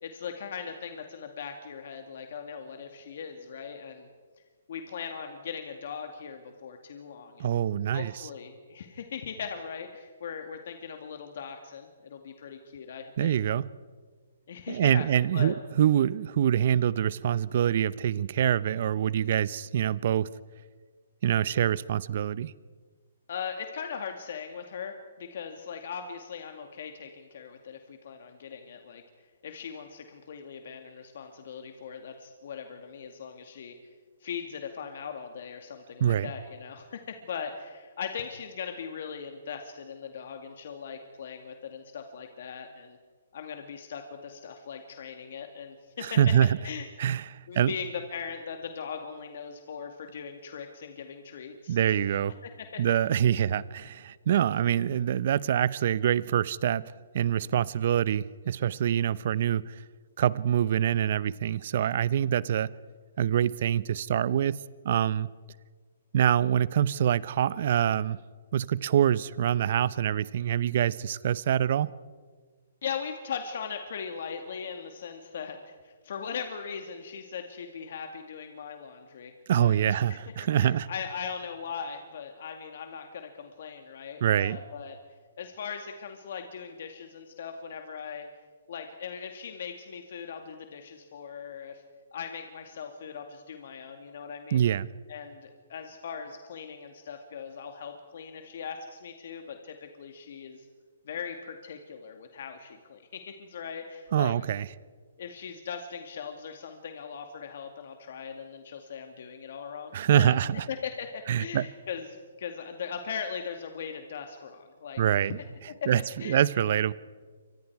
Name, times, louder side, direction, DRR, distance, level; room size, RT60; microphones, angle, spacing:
voice 1, 0.0-4.1 4.7-7.5 7.9-13.4 14.5-15.1 15.3-15.6 23.3-29.0 29.4-33.8 34.2-43.0 43.3-46.2 46.6-46.9 47.5-52.1 52.6-52.8 72.8-79.3 79.6-85.0 85.4-88.3 88.7-91.8 92.1-94.6 95.1-100.7 101.1-104.3 105.2-110.4 110.7-112.1 112.4-115.3 115.8-115.9 116.2-116.4, left 6 dB, 60° left, 5 dB, 2.2 m, -39 dB
voice 2, 7.4-8.3 13.2-13.7 14.7-20.3 21.2-22.5 36.0-36.3 46.0-46.5 47.0-47.7 51.7-52.4 52.8-56.8 57.1-59.8 60.2-62.7 63.2-65.3 66.1-68.2 68.5-71.9 79.5-80.9 84.2-84.6 94.5-94.9 104.1-104.7 109.9-110.7 111.3-111.7 115.0-115.4 115.9-116.9, right 10 dB, 55° right, 19 dB, 0.8 m, -25 dB
29.0 x 24.5 x 4.8 m, 1.5 s
hypercardioid pair, 140°, 0 cm